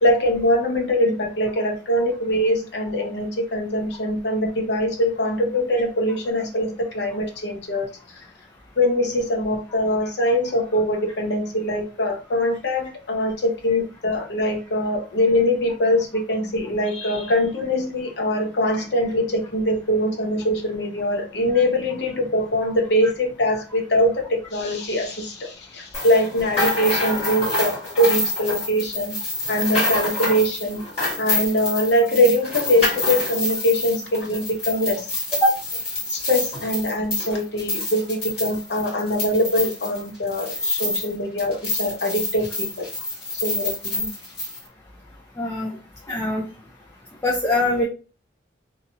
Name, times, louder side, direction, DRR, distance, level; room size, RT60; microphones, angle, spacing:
voice 1, 0.0-7.9 8.8-29.1 29.5-30.8 31.2-35.1 36.1-42.9 43.4-44.1, left 1 dB, 65° left, 3 dB, 0.8 m, -22 dB
sound 1, 25.9-41.1 41.4-44.6, left 2 dB, 35° left, 1.4 m, -27 dB
voice 2, 45.4-45.7 46.1-46.4 47.2-47.8, left 1 dB, 15° left, -3 dB, 0.5 m, -21 dB
2.8 x 2.7 x 2.6 m, 0.33 s
head